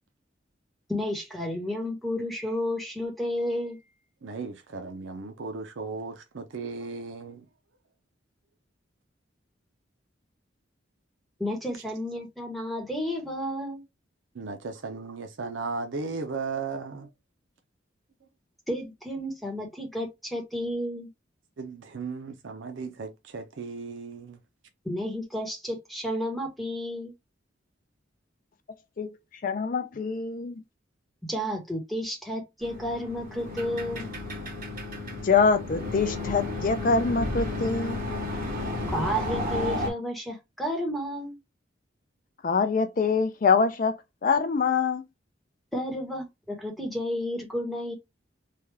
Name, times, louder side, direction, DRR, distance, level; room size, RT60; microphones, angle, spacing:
voice 1, 0.9-3.8 11.4-13.8 18.7-21.1 24.8-27.1 31.3-34.1 38.9-41.4 45.7-47.9, equal, ahead, 1.1 m, -31 dB
voice 2, 4.2-7.4 14.3-17.1 21.6-24.4, right 4 dB, 80° right, 0.6 m, -36 dB
voice 3, 29.0-30.6 35.1-38.0 42.4-45.0, left 5 dB, 45° left, 0.4 m, -25 dB
sound 1, 32.6-39.9, left 2 dB, 45° right, 1.6 m, -32 dB
3.3 x 2.3 x 3.3 m
head